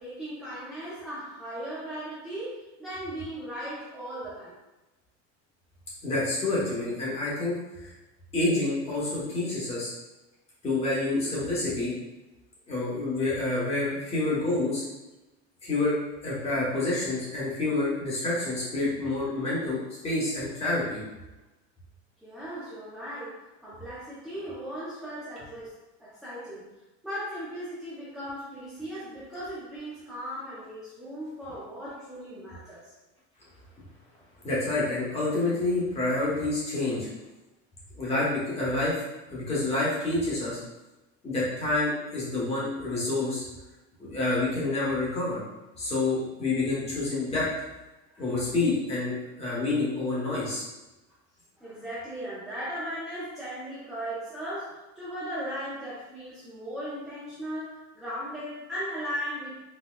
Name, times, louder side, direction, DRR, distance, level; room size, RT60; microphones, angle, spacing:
voice 1, 0.0-4.5 22.2-25.7 26.0-26.7 27.0-32.9 48.1-48.2 51.6-59.6, equal, ahead, -11 dB, 0.5 m, -37 dB
voice 2, 6.0-7.6 7.8-7.9 8.3-9.9 10.6-11.9 12.7-14.8 15.6-15.9 16.2-21.0 34.4-37.1 38.0-39.0 39.3-40.6 41.2-43.4 44.0-45.4 45.8-47.5 48.2-50.6, left 2 dB, 20° left, -6 dB, 0.9 m, -28 dB
4.1 x 2.1 x 2.2 m, 1.0 s
cardioid pair, 155°, 32 cm